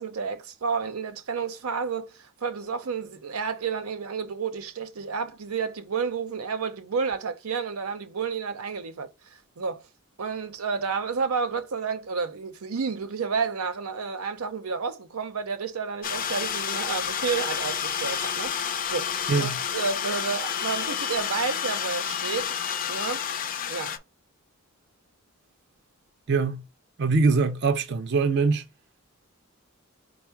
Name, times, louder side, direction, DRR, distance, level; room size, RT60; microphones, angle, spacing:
voice 1, 0.0-9.8 10.2-18.5 18.9-22.6 22.9-23.3 23.7-24.0, right 5 dB, 90° right, 0.7 m, -31 dB
sound 1, 16.0-24.0, left 8 dB, 40° left, 0.4 m, -30 dB
voice 2, 19.3-19.6 26.3-26.6 27.0-28.7, right 4 dB, 55° right, 0.5 m, -23 dB
4.4 x 2.1 x 4.5 m
head